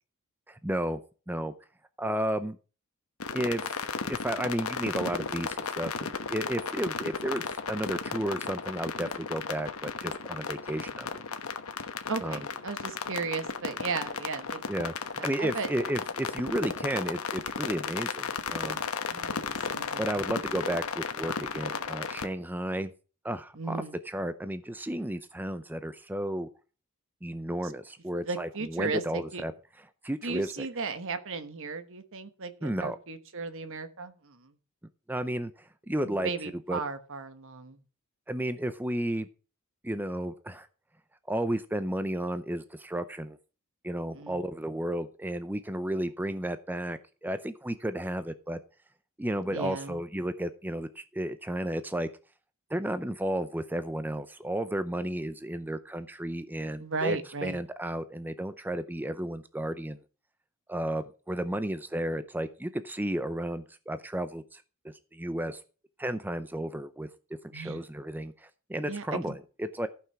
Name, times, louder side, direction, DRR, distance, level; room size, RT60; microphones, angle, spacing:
voice 1, 0.5-1.0 1.3-1.5 2.0-2.6 3.3-3.8 4.0-11.2 12.2-12.4 14.7-14.9 15.2-18.9 20.0-22.9 23.2-26.5 27.2-29.5 30.0-30.7 32.6-33.0 35.1-36.3 36.7-36.8 38.3-39.3 39.8-40.7 41.3-43.4 43.8-48.6 49.2-52.1 52.7-60.0 60.7-65.6 66.0-67.1 67.5-69.9, right 1 dB, 10° right, 11 dB, 0.5 m, -33 dB
sound 1, 3.2-22.3, left 5 dB, 70° left, 1.1 m, -35 dB
voice 2, 12.1-14.6 15.2-15.7 19.1-20.2 23.5-23.9 27.6-27.7 28.2-29.4 30.2-34.5 36.0-37.8 44.1-44.4 49.4-50.0 56.8-57.6 67.5-67.8 68.8-69.4, right 4 dB, 60° right, 10 dB, 1.2 m, -36 dB
14.5 x 5.9 x 5.9 m, 0.37 s
head